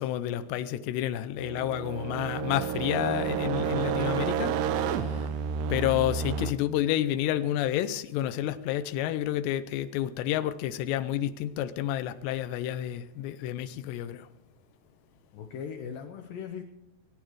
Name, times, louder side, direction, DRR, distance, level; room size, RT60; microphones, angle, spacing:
voice 1, 0.0-5.3 5.7-14.3, left 12 dB, 90° left, 2.9 m, -30 dB
sound 1, 1.4-6.5, right 7 dB, 80° right, 2.7 m, -30 dB
sound 2, 2.4-6.6, right 3 dB, 60° right, 1.4 m, -46 dB
voice 2, 15.3-16.6, left 7 dB, 70° left, 2.4 m, -39 dB
21.5 x 10.5 x 4.7 m
omnidirectional pair, 4.8 m